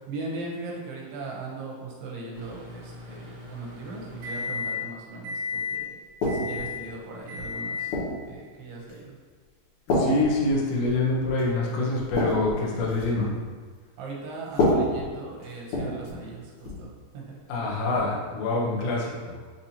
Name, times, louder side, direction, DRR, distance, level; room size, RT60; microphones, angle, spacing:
voice 1, 0.1-6.0 6.3-8.0 8.2-9.2 14.0-16.9 17.1-17.4 18.6-18.9, right 3 dB, 85° right, -2 dB, 2.8 m, -39 dB
Microwave oven, 2.3-4.9 5.2-5.8 6.3-6.9 7.3-7.9, left 5 dB, 70° right, 1.7 m, -34 dB
sound 1, 6.2-6.7 7.4-8.2 8.9-9.2 9.9-11.1 11.4-11.5 11.9-13.2 14.5-16.3 16.6-16.9 17.9-18.1, left 1 dB, 60° left, 2.0 m, -28 dB
voice 2, 9.9-13.4 17.5-19.4, left 2 dB, 85° left, -3 dB, 1.8 m, -26 dB
6.6 x 2.7 x 2.8 m, 1.5 s
omnidirectional pair, 4.7 m